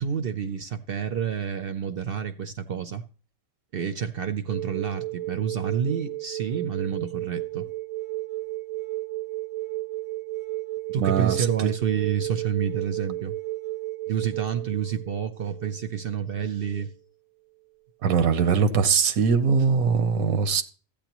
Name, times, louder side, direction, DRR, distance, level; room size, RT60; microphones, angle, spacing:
voice 1, 0.0-3.0 3.7-7.7 10.9-13.3 14.1-16.9, right 8 dB, 55° right, 0.7 m, -29 dB
sound 1, 4.5-16.9 18.7-18.8, right 19 dB, 75° right, 1.0 m, -34 dB
voice 2, 11.0-11.5 18.0-20.6, right 6 dB, 90° right, 1.3 m, -21 dB
13.5 x 8.7 x 3.0 m
omnidirectional pair, 1.4 m